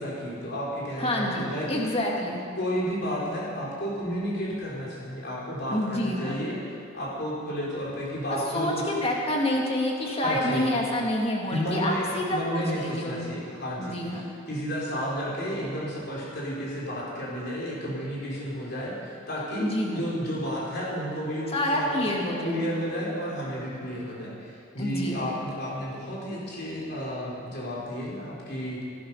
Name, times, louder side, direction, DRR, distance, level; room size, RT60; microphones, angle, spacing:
voice 1, 0.0-1.8 2.6-8.8 10.2-10.7 11.5-22.1 22.4-28.8, equal, 50° left, -4 dB, 3.7 m, -32 dB
voice 2, 1.0-2.4 5.7-6.4 8.3-13.4 13.8-14.2 19.6-20.0 21.5-22.7 24.8-25.3, left 1 dB, 30° left, -1 dB, 1.9 m, -28 dB
17.5 x 11.0 x 5.4 m, 2.4 s
head